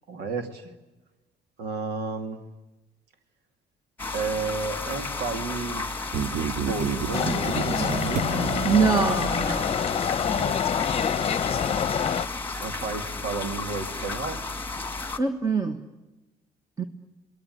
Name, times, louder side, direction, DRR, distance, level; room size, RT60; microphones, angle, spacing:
voice 1, 0.1-0.7 1.6-2.4 4.1-5.9 6.3-8.3 10.2-10.6 12.6-14.5, right 4 dB, 80° right, 8 dB, 3.0 m, -32 dB
sound 1, 4.0-15.2, left 3 dB, 10° left, 2.1 m, -33 dB
sound 2, 6.1-9.8, right 6 dB, 45° right, 0.9 m, -30 dB
sound 3, 7.1-12.3, left 7 dB, 35° left, 1.0 m, -26 dB
voice 2, 8.6-9.8 15.2-15.8 16.8-16.9, right 5 dB, 20° right, 7 dB, 1.6 m, -23 dB
27.5 x 20.5 x 9.6 m, 1.1 s
cardioid pair, 110°, 17 cm